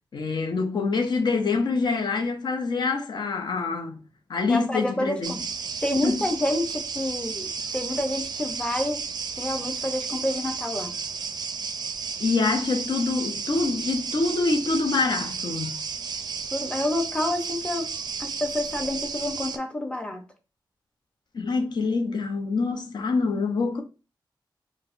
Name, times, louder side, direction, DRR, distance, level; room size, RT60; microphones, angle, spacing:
voice 1, 0.1-4.0 4.3-5.4 6.0-6.2 12.2-15.8 21.3-23.8, left 4 dB, 60° left, 0.6 m, -25 dB
voice 2, 4.5-5.4 5.8-9.0 9.4-11.0 16.5-17.9 18.2-20.2, left 1 dB, 10° left, 0.6 m, -28 dB
sound 1, 5.2-19.6, right 5 dB, 55° right, 0.4 m, -33 dB
4.5 x 2.1 x 2.5 m
wide cardioid pair, 105°, 8 cm